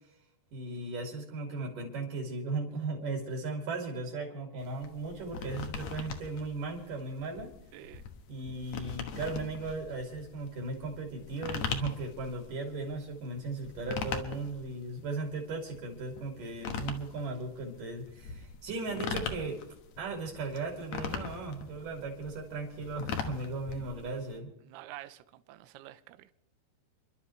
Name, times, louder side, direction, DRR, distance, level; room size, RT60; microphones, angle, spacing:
voice 1, 0.5-7.5 8.3-19.6 20.0-24.5, right 3 dB, 50° right, 3.4 m, -37 dB
sound 1, 4.6-24.4, left 6 dB, 80° left, 1.5 m, -41 dB
voice 2, 7.7-8.1 24.6-26.3, right 15 dB, 80° right, 2.5 m, -48 dB
29.5 x 11.5 x 3.2 m
omnidirectional pair, 5.1 m